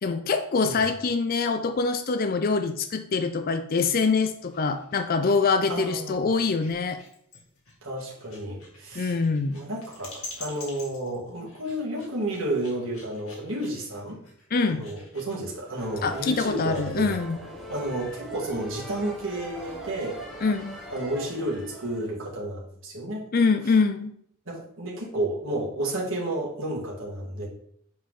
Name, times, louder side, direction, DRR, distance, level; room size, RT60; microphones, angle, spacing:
voice 1, 0.0-7.0 9.0-9.6 14.5-14.9 16.0-17.4 20.4-20.8 23.3-24.1, left 4 dB, 40° left, 8 dB, 0.4 m, -24 dB
sound 1, 4.3-17.0, left 3 dB, 80° left, 2.3 m, -48 dB
voice 2, 5.7-6.2 7.8-9.2 9.5-10.1 10.4-14.2 14.7-17.2 17.7-20.2 20.9-23.3 24.5-27.5, right 1 dB, 60° right, -4 dB, 2.3 m, -31 dB
sound 2, 15.8-22.2, right 1 dB, ahead, 1.2 m, -41 dB
7.3 x 4.6 x 3.7 m, 0.66 s
head